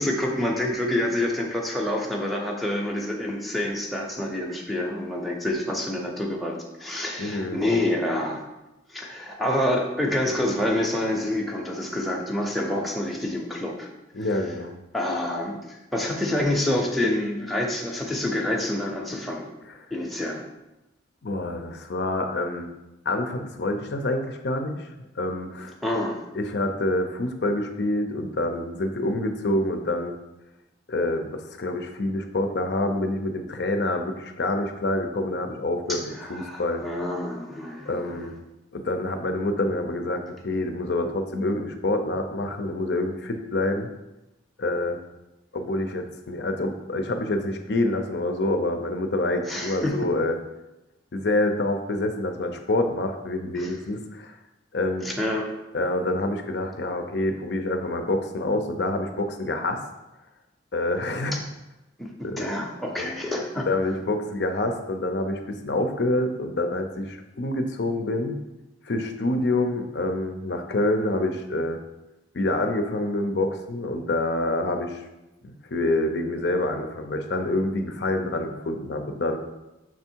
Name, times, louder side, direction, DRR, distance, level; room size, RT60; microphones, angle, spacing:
voice 1, 0.0-8.4 8.9-13.9 14.9-19.5 19.9-20.4 25.8-26.2 35.9-38.3 49.5-50.0 53.6-53.7 55.0-55.5 61.3-61.4 62.0-63.7, left 1 dB, ahead, 0 dB, 0.6 m, -27 dB
voice 2, 7.2-7.6 14.1-14.7 21.2-22.7 23.1-24.9 25.2-25.7 26.3-30.1 30.9-36.8 37.9-38.4 38.7-43.9 44.6-45.0 45.5-50.4 51.1-54.3 54.7-55.1 55.7-59.8 60.7-61.4 62.2-62.5 63.0-63.1 63.7-68.4 68.9-71.8 72.3-75.0 75.4-79.4, left 2 dB, 60° left, 5 dB, 0.5 m, -27 dB
6.2 x 3.5 x 4.5 m, 0.97 s
head